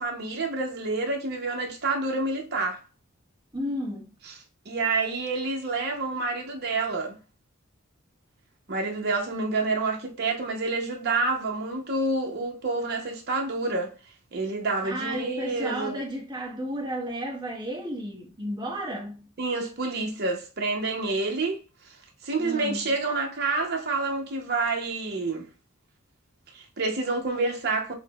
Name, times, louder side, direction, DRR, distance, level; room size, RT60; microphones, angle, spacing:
voice 1, 0.0-2.8 4.3-4.4 4.7-7.2 8.7-13.9 14.3-16.0 19.4-21.6 21.9-22.0 22.2-25.5 26.5-27.9, right 3 dB, 50° right, 0.7 m, -28 dB
voice 2, 3.5-4.1 14.8-19.3 22.4-22.9, equal, 20° right, 1.0 m, -33 dB
6.0 x 2.0 x 2.2 m
head